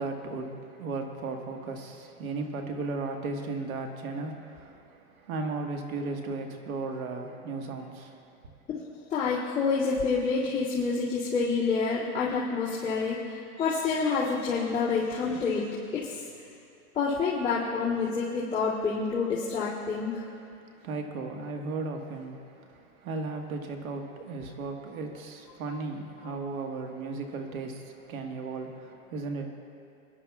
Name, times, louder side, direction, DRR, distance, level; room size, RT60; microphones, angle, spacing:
voice 1, 0.0-8.5 20.7-29.5, right 3 dB, 75° right, 3 dB, 1.7 m, -36 dB
voice 2, 8.7-16.2 16.9-20.2, left 4 dB, 15° left, -12 dB, 2.4 m, -28 dB
24.5 x 11.0 x 2.4 m, 2.5 s
supercardioid pair, 155°, 43 cm